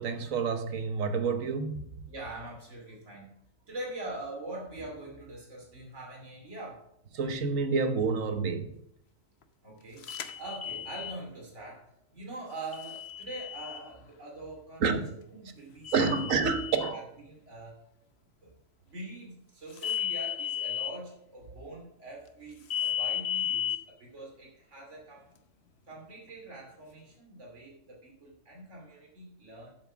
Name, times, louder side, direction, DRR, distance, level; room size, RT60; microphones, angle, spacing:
voice 1, 0.0-2.1 7.1-8.7 14.8-15.1 15.9-17.0, right 5 dB, 80° right, 1.5 m, -28 dB
voice 2, 2.1-3.3 3.7-6.9 9.6-16.3 16.9-17.8 18.4-18.5 18.8-25.3 25.9-29.8, right 2 dB, 65° right, 3.2 m, -43 dB
sound 1, 10.0-11.2 12.7-13.8 15.8-16.9 19.8-20.9 22.7-23.8, left 10 dB, 55° left, 1.0 m, -33 dB
7.9 x 7.7 x 6.1 m
omnidirectional pair, 1.3 m